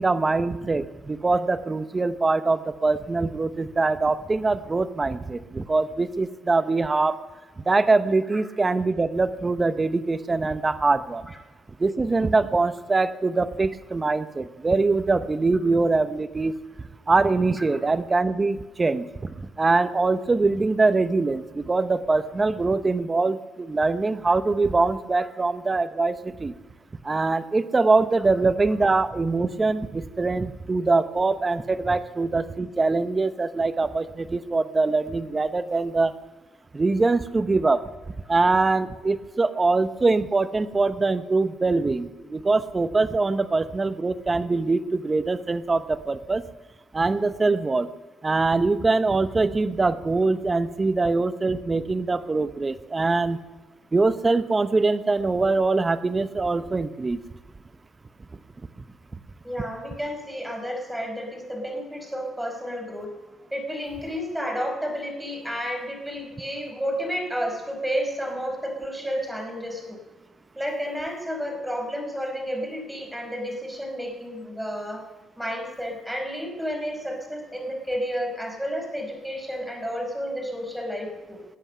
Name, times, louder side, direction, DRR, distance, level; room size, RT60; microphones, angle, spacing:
voice 1, 0.0-7.2 7.7-11.3 11.8-16.6 17.1-19.3 19.6-26.5 27.0-36.1 36.7-37.8 38.3-46.4 46.9-47.9 48.2-53.4 53.9-57.2, right 3 dB, 25° right, 12 dB, 0.8 m, -23 dB
voice 2, 59.4-63.1 63.5-70.0 70.6-75.0 75.4-81.4, equal, 5° right, 2 dB, 4.8 m, -31 dB
20.0 x 8.1 x 6.8 m, 1.2 s
cardioid pair, 90°, 0 cm